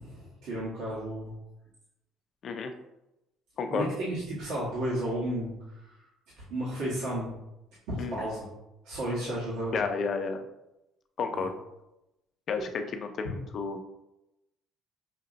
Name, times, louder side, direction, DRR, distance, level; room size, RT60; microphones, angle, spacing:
voice 1, 0.0-1.4 3.7-5.9 6.4-7.3 7.9-8.5 8.8-9.9 11.3-11.4, right 1 dB, 75° right, -7 dB, 1.1 m, -33 dB
voice 2, 2.4-2.7 3.6-3.9 8.0-8.2 9.7-10.4 11.2-11.5 12.5-13.8, left 5 dB, 55° left, 6 dB, 0.5 m, -31 dB
5.7 x 2.7 x 2.5 m, 0.92 s
hypercardioid pair, 65°, 0 cm